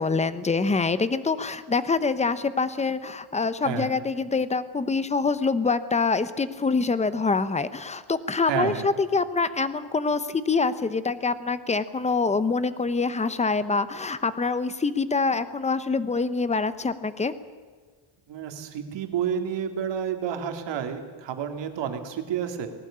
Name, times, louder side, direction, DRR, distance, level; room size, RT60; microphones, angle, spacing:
voice 1, 0.0-17.3, left 4 dB, 15° left, 14 dB, 0.7 m, -25 dB
voice 2, 3.6-3.9 8.5-8.9 18.3-22.7, right 8 dB, 60° right, 6 dB, 2.5 m, -30 dB
19.5 x 18.0 x 8.6 m, 1.5 s
cardioid pair, 180°, 48 cm